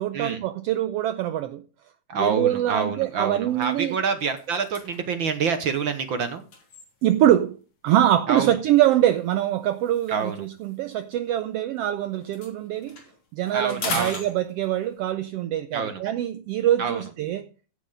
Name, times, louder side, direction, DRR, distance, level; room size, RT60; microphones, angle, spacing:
voice 1, 0.0-1.6 2.2-4.0 7.0-7.6 7.8-13.0 13.3-17.5, right 12 dB, 80° right, 1.4 m, -24 dB
voice 2, 2.1-6.4 8.3-8.5 10.1-10.5 13.5-14.2 15.7-16.0 16.8-17.0, right 5 dB, 60° right, 1.3 m, -27 dB
sound 1, 2.3-2.6 3.0-3.1 3.5-7.4 8.3-11.8 12.1-15.0, left 4 dB, 70° left, 4.3 m, -40 dB
16.0 x 6.5 x 3.9 m
omnidirectional pair, 3.3 m